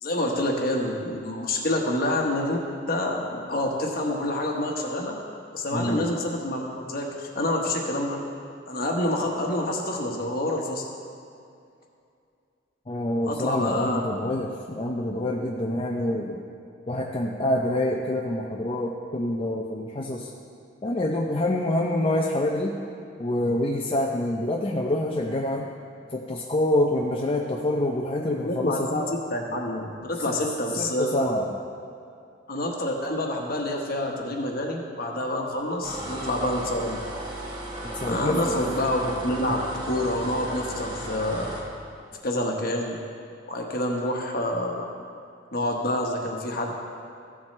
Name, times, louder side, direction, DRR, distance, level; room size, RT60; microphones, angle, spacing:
voice 1, 0.0-2.6 2.9-5.2 5.5-8.2 8.7-10.9 13.3-14.0 28.4-31.3 32.5-37.0 38.0-41.5 42.2-43.0 43.5-44.9 45.5-46.7, left 1 dB, 50° left, 0 dB, 1.2 m, -27 dB
voice 2, 5.7-6.1 12.9-16.4 16.9-20.3 20.8-22.7 23.2-25.7 26.1-29.0 30.3-30.4 30.8-31.5 38.0-38.5, left 1 dB, 30° left, -1 dB, 0.5 m, -26 dB
sound 1, 35.8-41.7, right 1 dB, 25° right, 1.3 m, -35 dB
15.0 x 7.4 x 3.2 m, 2.5 s
head